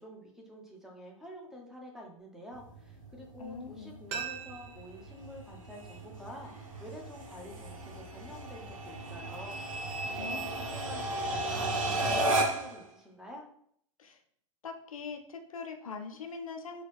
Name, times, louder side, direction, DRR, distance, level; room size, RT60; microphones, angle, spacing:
voice 1, 0.0-13.5, equal, 5° right, 0 dB, 0.9 m, -48 dB
sound 1, 2.5-12.8, right 2 dB, 75° right, 1.0 m, -35 dB
voice 2, 3.4-4.0 10.1-10.5 14.0-14.2 14.6-16.8, left 5 dB, 85° left, 5 dB, 0.6 m, -42 dB
sound 2, 4.1-6.9 7.2-7.3, right 7 dB, 40° right, 0.7 m, -44 dB
3.8 x 2.3 x 3.4 m, 0.66 s
hypercardioid pair, 100°, 17 cm